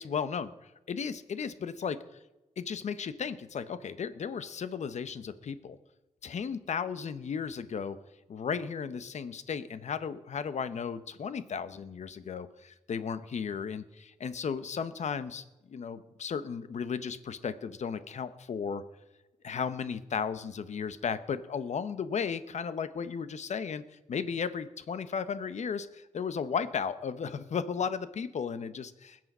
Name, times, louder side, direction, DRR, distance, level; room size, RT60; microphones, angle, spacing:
voice 1, 0.0-2.0 2.6-5.8 6.2-8.0 8.3-18.8 19.4-29.3, left 6 dB, 65° left, 13 dB, 0.9 m, -35 dB
20.5 x 7.7 x 5.5 m, 1.0 s
wide cardioid pair, 95°, 13 cm